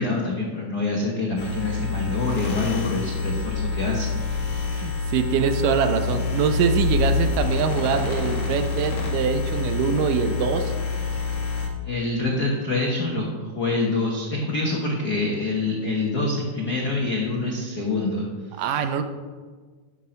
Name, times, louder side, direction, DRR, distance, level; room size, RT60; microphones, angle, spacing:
voice 1, 0.0-4.6 11.8-18.3 18.6-18.8, left 2 dB, 90° left, -2 dB, 0.8 m, -26 dB
sound 1, 1.4-11.7, left 4 dB, 45° left, 1.9 m, -26 dB
voice 2, 4.7-10.7 18.6-19.0, right 7 dB, 80° right, 8 dB, 2.3 m, -24 dB
12.0 x 5.9 x 5.2 m, 1.5 s
omnidirectional pair, 3.9 m